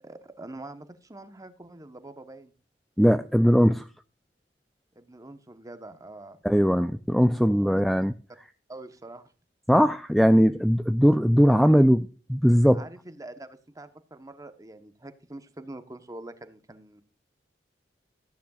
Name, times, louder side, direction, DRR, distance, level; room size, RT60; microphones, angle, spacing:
voice 1, 0.0-2.5 5.0-6.4 7.6-7.8 8.7-9.3 12.7-17.0, right 2 dB, 20° right, 1.0 m, -44 dB
voice 2, 3.0-3.9 6.4-8.1 9.7-12.8, equal, ahead, 0.4 m, -20 dB
14.5 x 10.0 x 2.4 m
head